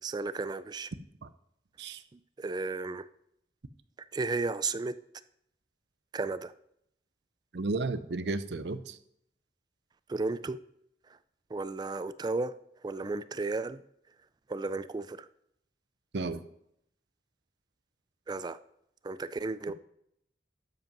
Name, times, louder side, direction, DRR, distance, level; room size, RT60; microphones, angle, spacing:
voice 1, 0.0-0.9 2.1-3.1 4.1-4.9 6.1-6.5 10.1-10.6 11.5-12.5 12.8-13.8 14.5-15.3 18.3-18.6 19.0-19.7, right 3 dB, 25° right, 14 dB, 0.3 m, -33 dB
voice 2, 7.5-9.0 16.1-16.4, right 3 dB, 75° right, 13 dB, 0.6 m, -33 dB
12.5 x 5.3 x 5.3 m, 0.74 s
head